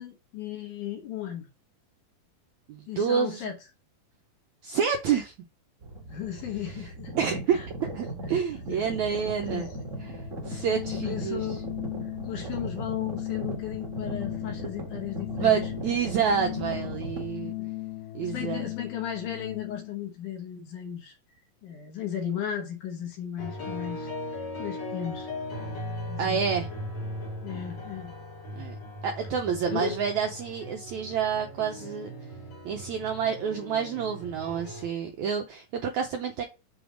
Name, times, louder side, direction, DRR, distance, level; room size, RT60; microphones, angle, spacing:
voice 1, 0.0-1.5 2.9-3.6 6.1-7.1 7.5-7.7 8.7-8.9 9.5-9.7 10.5-10.6 10.9-11.6 12.3-15.6 17.4-17.7 18.2-21.2 21.6-24.1 24.6-25.3 26.1-26.4 27.4-28.1 29.7-30.0, left 10 dB, 65° left, 2.5 m, -35 dB
voice 2, 2.7-3.4 4.6-5.3 6.8-6.9 7.2-7.6 7.9-9.7 10.0-11.5 15.3-17.6 18.1-18.7 26.2-26.7 28.5-28.8 29.0-32.1 32.7-36.4, right 7 dB, 80° right, 1.7 m, -28 dB
sound 1, 5.8-17.3, right 1 dB, 55° right, 0.8 m, -38 dB
Organ, 9.7-20.0, left 16 dB, 85° left, 2.8 m, -37 dB
sound 2, 23.4-34.9, left 1 dB, 40° left, 2.1 m, -38 dB
6.8 x 3.5 x 6.2 m
omnidirectional pair, 4.3 m